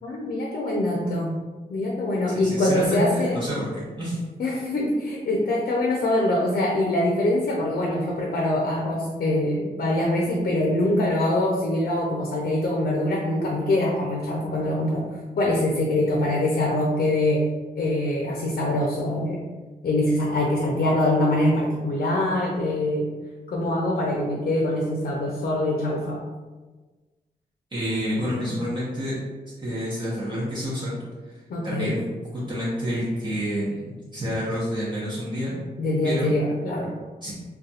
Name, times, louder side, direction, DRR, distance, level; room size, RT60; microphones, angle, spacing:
voice 1, 0.0-1.3 1.7-3.4 4.4-15.0 15.4-17.4 17.8-19.4 19.8-23.1 23.5-26.2 31.5-32.0 35.8-36.9, left 1 dB, 70° left, -2 dB, 0.6 m, -24 dB
voice 2, 2.3-4.2 27.7-29.2 29.6-30.9 31.2-31.4 31.6-32.0 32.3-35.5 36.0-36.3 37.2-37.3, equal, 30° right, -9 dB, 0.8 m, -28 dB
2.4 x 2.3 x 4.0 m, 1.3 s
wide cardioid pair, 145°, 16 cm